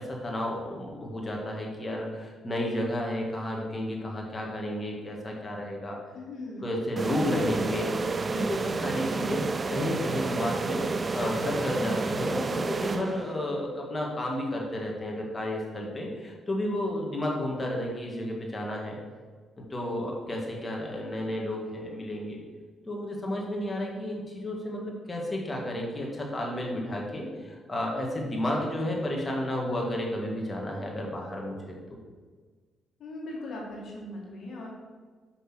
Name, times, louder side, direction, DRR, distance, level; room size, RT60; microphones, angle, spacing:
voice 1, 0.0-6.0 6.6-7.9 8.3-10.8 11.1-19.0 19.7-22.4 22.9-32.0, left 1 dB, 25° left, -1 dB, 2.0 m, -32 dB
voice 2, 6.1-6.7 33.0-34.7, left 1 dB, 60° left, -2 dB, 1.9 m, -39 dB
sound 1, 7.0-13.6, right 4 dB, 30° right, 0.4 m, -30 dB
6.0 x 5.4 x 6.2 m, 1.5 s
cardioid pair, 90°, 0 cm